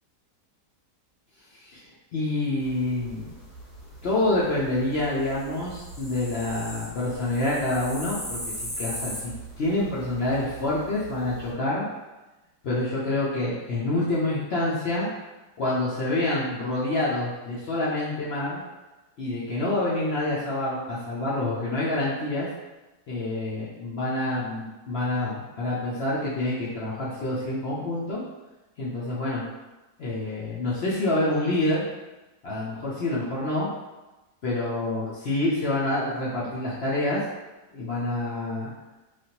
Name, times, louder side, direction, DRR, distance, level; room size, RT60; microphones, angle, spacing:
voice 1, 2.1-3.2 4.0-11.9 12.6-15.1 15.6-18.6 19.2-22.5 23.1-28.2 28.8-29.4 30.0-31.8 32.4-33.7 34.4-37.2 37.7-38.7, left 2 dB, 75° left, -7 dB, 0.5 m, -27 dB
sound 1, 2.6-11.5, equal, 15° left, 1.0 m, -39 dB
3.3 x 2.4 x 2.8 m, 1.1 s
omnidirectional pair, 1.8 m